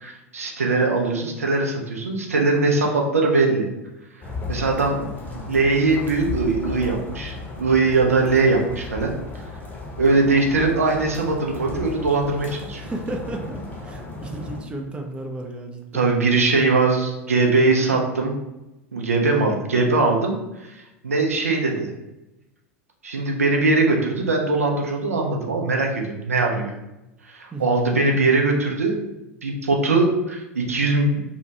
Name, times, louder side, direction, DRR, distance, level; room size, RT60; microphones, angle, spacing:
voice 1, 0.0-3.7 4.5-9.1 10.0-12.8 15.9-18.4 18.9-22.0 23.0-26.7 27.3-29.1 29.4-31.2, right 3 dB, 75° right, 1 dB, 0.5 m, -21 dB
sound 1, 4.2-14.6, left 3 dB, 20° left, 0.7 m, -35 dB
voice 2, 12.8-16.2 27.5-27.8, right 1 dB, 15° right, 3 dB, 0.4 m, -33 dB
2.7 x 2.2 x 2.7 m, 0.96 s
figure-of-eight pair, 80°, 8 cm